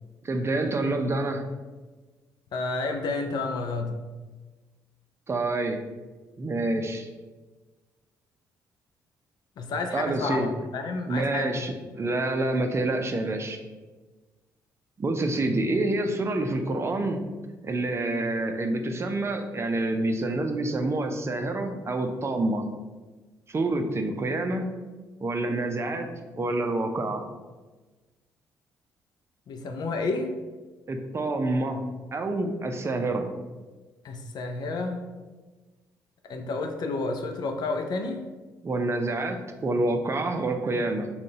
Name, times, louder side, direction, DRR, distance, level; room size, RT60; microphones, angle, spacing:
voice 1, 0.2-1.5 5.3-5.8 6.4-7.1 9.9-10.5 11.1-13.6 15.0-17.3 17.6-22.7 23.5-24.7 25.2-26.1 26.3-27.3 30.9-31.8 32.1-33.3 38.6-41.1, right 2 dB, 35° right, 5 dB, 0.5 m, -27 dB
voice 2, 2.5-4.0 9.6-11.9 29.5-30.3 34.0-35.0 36.2-38.2, left 3 dB, 60° left, 5 dB, 0.5 m, -30 dB
3.7 x 2.3 x 4.0 m, 1.3 s
supercardioid pair, 55°, 8 cm